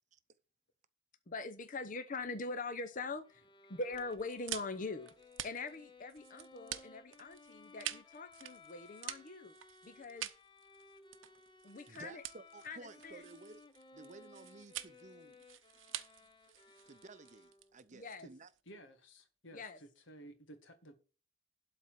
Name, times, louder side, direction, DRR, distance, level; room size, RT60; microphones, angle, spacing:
voice 1, 1.3-5.1 5.4-9.5 9.8-10.3 11.6-12.2 12.6-13.2 17.9-18.3 19.5-19.8, left 3 dB, 45° left, 0.8 m, -43 dB
Bowed string instrument, 3.2-17.9, left 3 dB, 25° left, 0.9 m, -60 dB
sound 1, 3.9-18.6, right 12 dB, 85° right, 0.8 m, -47 dB
voice 2, 11.9-13.6 13.9-15.4 16.9-18.5, right 3 dB, 40° right, 0.7 m, -54 dB
voice 3, 18.7-20.9, right 1 dB, 80° left, 2.0 m, -55 dB
12.0 x 4.3 x 7.3 m
head